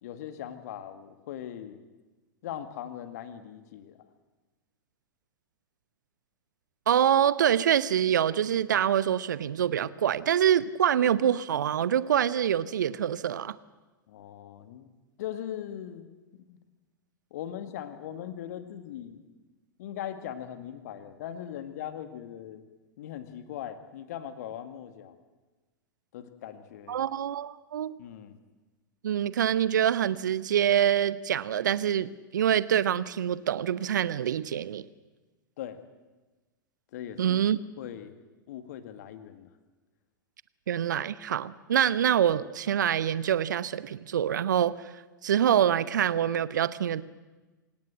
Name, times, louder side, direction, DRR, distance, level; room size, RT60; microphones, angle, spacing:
voice 1, 0.0-1.8 2.4-4.0 14.1-14.9 15.2-16.1 16.4-16.6 17.3-19.2 19.8-22.6 23.0-25.2 26.1-27.0 28.0-28.4 35.6-35.8 36.9-37.4 37.8-38.1 38.5-39.5, left 10 dB, 50° left, 10 dB, 2.1 m, -40 dB
voice 2, 6.9-13.6 26.9-27.9 29.0-34.8 37.2-37.6 40.7-44.7 45.2-47.0, right 9 dB, 60° right, 17 dB, 0.9 m, -25 dB
27.5 x 18.0 x 7.7 m, 1.2 s
figure-of-eight pair, 95°, 11 cm